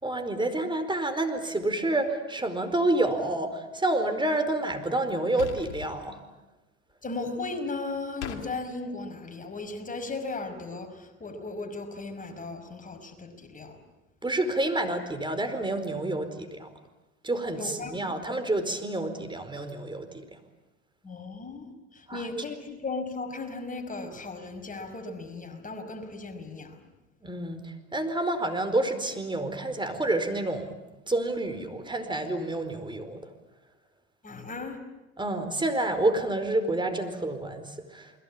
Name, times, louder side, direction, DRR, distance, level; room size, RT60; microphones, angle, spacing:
voice 1, 0.0-6.2 14.2-16.7 17.2-20.2 22.1-22.3 27.2-30.8 31.1-33.2 35.2-38.2, right 2 dB, 15° right, 8 dB, 4.6 m, -29 dB
sound 1, 5.4-5.9 8.2-8.4, left 9 dB, 85° left, 2.4 m, -38 dB
voice 2, 7.0-13.8 17.6-18.0 21.0-26.8 34.2-34.8, left 3 dB, 25° left, 5 dB, 5.4 m, -36 dB
29.0 x 22.0 x 8.7 m, 1.0 s
hypercardioid pair, 70°, 34 cm